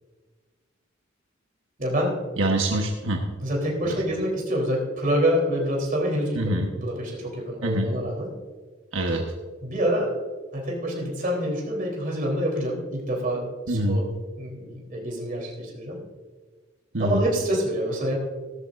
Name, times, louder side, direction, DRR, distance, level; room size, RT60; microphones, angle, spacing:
voice 1, 1.8-2.2 3.4-8.3 9.6-10.1 10.5-14.1 14.4-16.0 17.0-18.2, equal, 45° right, -2 dB, 3.5 m, -26 dB
voice 2, 2.4-3.2 6.4-6.7 7.6-7.9 8.9-9.3 13.7-14.0 16.9-17.2, right 1 dB, 75° right, 1 dB, 1.2 m, -24 dB
16.5 x 13.0 x 2.6 m, 1.4 s
head